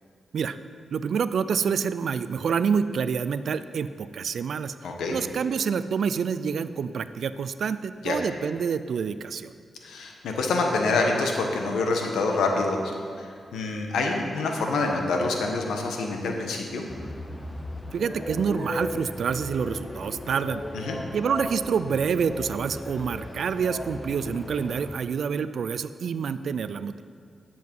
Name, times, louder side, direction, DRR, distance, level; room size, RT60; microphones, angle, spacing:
voice 1, 0.9-4.7 5.1-9.5 17.9-20.6 21.1-27.0, right 6 dB, 75° right, 13 dB, 0.4 m, -27 dB
voice 2, 4.8-5.2 8.0-8.2 9.8-12.8 13.2-16.8 20.7-21.0, left 3 dB, 90° left, 2 dB, 1.4 m, -26 dB
sound 1, 16.9-25.0, left 1 dB, 20° left, 1.0 m, -36 dB
11.0 x 7.8 x 5.6 m, 2.2 s
cardioid pair, 55°, 0 cm